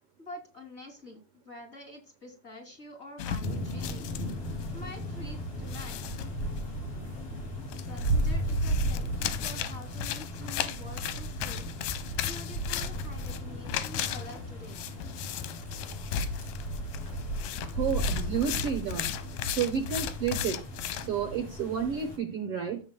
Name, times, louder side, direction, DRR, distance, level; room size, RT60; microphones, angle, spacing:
voice 1, 0.2-1.2 1.4-4.1 4.7-6.0 7.9-11.7 12.2-14.8, left 2 dB, 20° left, 2 dB, 2.9 m, -46 dB
sound 1, 3.2-4.8 5.0-5.1 5.7-6.6 7.7-21.1, left 10 dB, 85° left, 2.4 m, -36 dB
sound 2, 3.4-22.2, right 1 dB, 45° left, 4.2 m, -35 dB
voice 2, 17.7-19.1 19.5-20.6 21.0-22.8, right 7 dB, 60° right, 6 dB, 1.7 m, -31 dB
15.0 x 7.2 x 2.3 m, 0.32 s
omnidirectional pair, 3.6 m